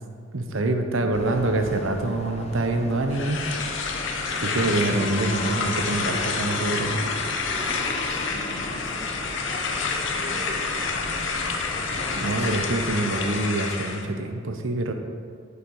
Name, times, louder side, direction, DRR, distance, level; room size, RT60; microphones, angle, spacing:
voice 1, 0.3-3.4 4.4-7.1 12.2-14.9, right 2 dB, 85° right, 6 dB, 0.8 m, -25 dB
voice 2, 0.9-1.3 8.2-9.3 9.6-11.8, equal, 35° right, -6 dB, 1.3 m, -44 dB
sound 1, 1.1-13.5, left 1 dB, 35° left, 0.6 m, -35 dB
sound 2, 3.1-14.1, left 4 dB, 70° left, 0.8 m, -29 dB
8.0 x 5.7 x 5.5 m, 2.2 s
head